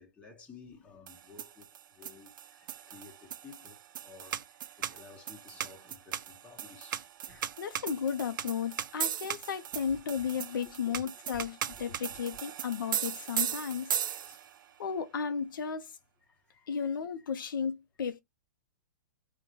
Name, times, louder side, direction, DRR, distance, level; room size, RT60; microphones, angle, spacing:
voice 1, 0.0-7.4 8.9-9.0 10.9-11.0 11.9-12.0 14.0-14.4 16.3-17.3, left 5 dB, 10° left, 0.9 m, -54 dB
sound 1, 1.1-14.6, right 10 dB, 75° right, 0.4 m, -38 dB
voice 2, 7.3-13.9 14.8-15.9 16.7-18.2, left 7 dB, 85° left, 0.5 m, -34 dB
3.6 x 2.2 x 2.9 m
hypercardioid pair, 145°, 11 cm